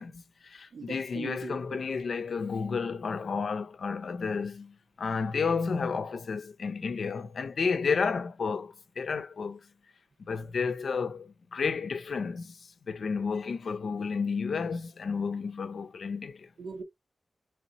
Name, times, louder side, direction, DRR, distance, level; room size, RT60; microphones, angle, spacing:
voice 1, 0.0-9.6 10.3-16.5, left 5 dB, 65° left, 0.5 m, -32 dB
voice 2, 0.7-1.8 16.6-16.8, right 5 dB, 85° right, 1.2 m, -40 dB
3.3 x 3.0 x 4.0 m
wide cardioid pair, 155°, 0 cm